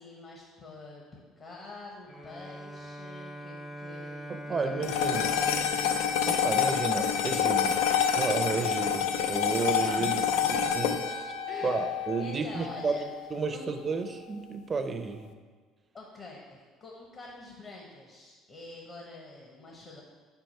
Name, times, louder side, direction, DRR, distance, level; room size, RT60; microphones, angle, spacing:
voice 1, 0.0-5.8 10.0-10.7 11.5-11.9 12.2-13.1 13.5-13.7 15.9-20.0, left 2 dB, 40° left, -1 dB, 0.9 m, -46 dB
Bowed string instrument, 2.1-7.3, equal, 15° left, 0.6 m, -43 dB
voice 2, 4.3-5.4 6.3-7.8 8.1-10.2 10.5-11.3 11.6-13.0 13.3-15.4, right 4 dB, 30° right, 7 dB, 0.5 m, -32 dB
sound 1, 4.8-13.3, left 8 dB, 90° left, 0.4 m, -28 dB
4.6 x 4.3 x 5.3 m, 1.5 s
cardioid pair, 100°, 0 cm